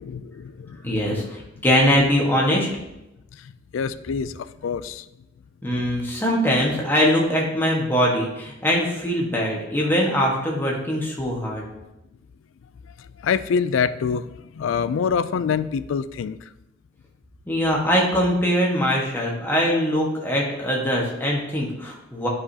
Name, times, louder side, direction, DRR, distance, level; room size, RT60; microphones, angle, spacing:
voice 1, 0.0-0.8 3.4-5.1 13.0-16.4, left 6 dB, 80° left, 14 dB, 0.3 m, -26 dB
voice 2, 0.8-2.7 5.6-11.6 17.5-22.3, equal, 10° left, -3 dB, 1.4 m, -22 dB
10.5 x 5.0 x 2.8 m, 0.93 s
head